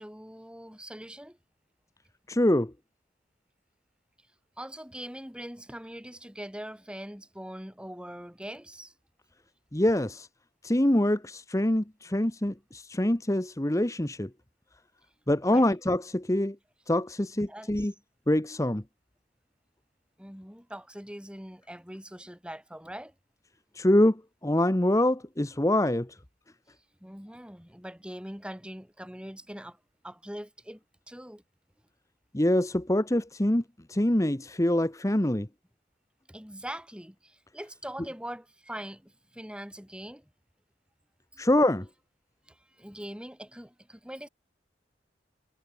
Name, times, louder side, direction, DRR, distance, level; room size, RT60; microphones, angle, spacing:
voice 1, 0.0-1.4 4.6-8.9 15.5-15.7 17.5-17.9 20.2-23.1 27.0-29.8 30.0-31.4 36.3-40.3 41.3-41.4 42.5-44.3, equal, 5° right, 4.5 m, -42 dB
voice 2, 2.3-2.7 9.7-10.3 10.6-14.3 15.3-16.6 16.9-17.9 18.3-18.8 23.7-26.2 32.3-33.6 33.9-35.5 41.4-41.9, left 1 dB, 20° left, 1.1 m, -25 dB
head